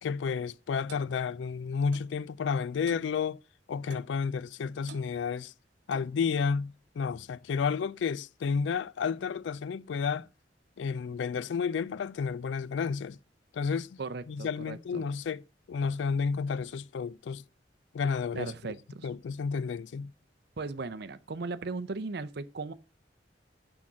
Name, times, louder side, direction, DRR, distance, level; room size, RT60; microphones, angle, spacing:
voice 1, 0.0-3.4 3.7-5.5 5.9-10.3 10.8-13.2 13.5-14.0 14.3-15.4 15.7-17.4 17.9-18.5 19.0-20.1, left 5 dB, 75° left, 0.3 m, -31 dB
Clock, 0.9-1.1 1.9-2.1 2.9-3.1 3.9-4.1 4.9-5.1 5.9-6.2, right 4 dB, 85° right, 0.9 m, -48 dB
voice 2, 14.0-15.1 18.3-19.1 20.6-22.7, right 3 dB, 60° right, 0.6 m, -37 dB
6.3 x 5.9 x 7.1 m
head